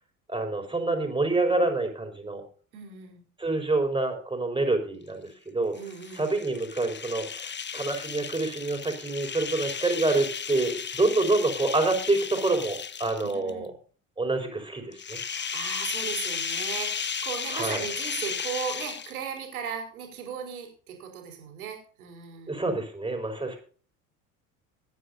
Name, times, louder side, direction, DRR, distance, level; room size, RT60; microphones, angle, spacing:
voice 1, 0.3-2.4 3.4-5.8 6.2-13.7 14.2-15.2 17.5-17.8 22.5-23.6, right 2 dB, 10° right, 4 dB, 5.4 m, -27 dB
voice 2, 2.7-3.2 5.7-6.3 13.2-13.6 15.2-22.6, right 7 dB, 80° right, 2 dB, 4.8 m, -37 dB
sound 1, 5.7-13.5 14.9-19.4, left 7 dB, 25° left, 1.1 m, -34 dB
23.0 x 10.0 x 2.7 m, 0.41 s
hypercardioid pair, 60°, 42 cm